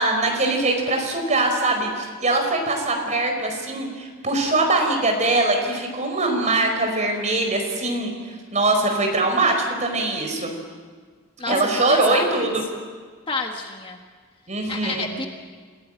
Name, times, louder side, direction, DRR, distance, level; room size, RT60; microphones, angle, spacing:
voice 1, 0.0-10.5 11.5-12.6 14.5-15.1, right 2 dB, 35° right, 3 dB, 4.8 m, -22 dB
voice 2, 11.9-12.8 13.3-14.0 14.7-15.3, left 3 dB, 25° left, 3 dB, 1.5 m, -30 dB
28.0 x 17.0 x 9.0 m, 1.5 s
head